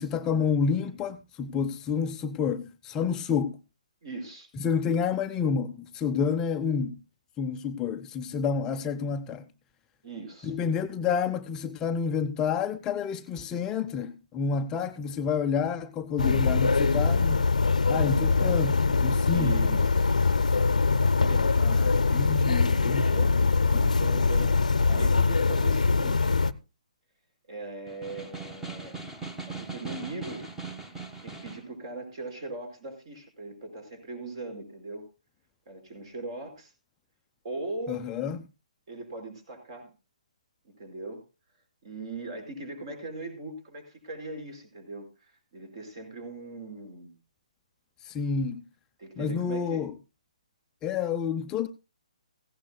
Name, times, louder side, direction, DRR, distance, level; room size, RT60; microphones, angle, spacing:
voice 1, 0.0-3.6 4.6-7.0 7.4-9.5 10.4-17.4 17.9-19.5 21.6-23.1 23.7-23.8 37.9-38.4 48.0-48.6 49.2-49.9 50.8-51.7, left 6 dB, 15° left, 0.5 m, -29 dB
voice 2, 4.0-4.5 10.0-10.5 19.3-20.4 20.8-21.6 22.9-23.4 23.7-26.3 27.5-29.0 29.5-30.5 31.2-35.1 35.7-36.7 37.4-38.0 38.9-39.9 40.6-41.2 41.8-47.1 49.0-49.9, right 2 dB, 45° right, 4.9 m, -40 dB
sound 1, 16.2-26.5, left 4 dB, 70° left, 0.7 m, -23 dB
Snare drum, 27.9-31.7, right 3 dB, 5° right, 1.3 m, -40 dB
17.5 x 16.0 x 2.2 m
figure-of-eight pair, 135°, 4 cm